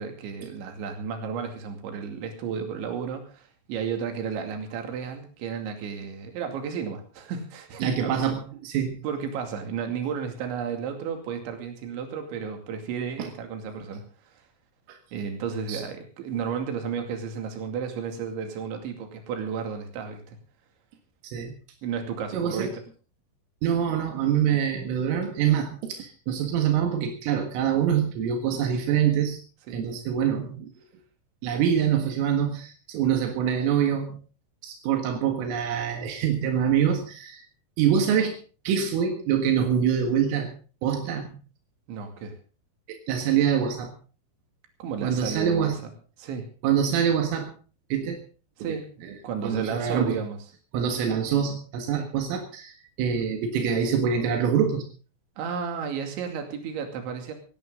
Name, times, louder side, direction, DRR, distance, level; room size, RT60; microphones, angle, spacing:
voice 1, 0.0-8.2 9.0-14.4 15.1-20.4 21.8-22.8 29.7-29.8 41.9-42.4 44.8-45.7 46.2-46.5 48.6-48.9 49.2-50.4 51.9-52.1 55.4-57.3, right 6 dB, 70° right, 5 dB, 4.7 m, -33 dB
voice 2, 7.8-9.0 14.9-15.0 15.7-15.8 21.2-21.5 22.3-22.7 23.6-29.4 29.7-30.7 31.4-34.2 34.6-37.5 37.8-38.4 38.7-40.5 40.8-41.4 42.9-43.9 45.0-45.8 46.6-47.5 47.9-48.2 49.0-49.1 49.4-50.2 50.7-54.8, right 8 dB, 85° right, 5 dB, 4.3 m, -25 dB
17.0 x 17.0 x 3.8 m, 0.37 s
omnidirectional pair, 5.7 m